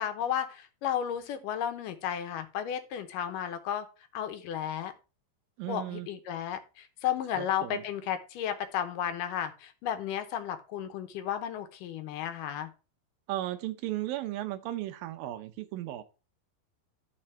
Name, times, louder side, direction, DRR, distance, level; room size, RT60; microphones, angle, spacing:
voice 1, 0.0-3.9 4.1-4.9 5.7-12.7, left 9 dB, 75° left, 2.5 m, -33 dB
voice 2, 5.6-6.1 7.3-7.8 13.3-16.0, right 14 dB, 85° right, 2.6 m, -35 dB
12.5 x 4.3 x 4.3 m
omnidirectional pair, 4.0 m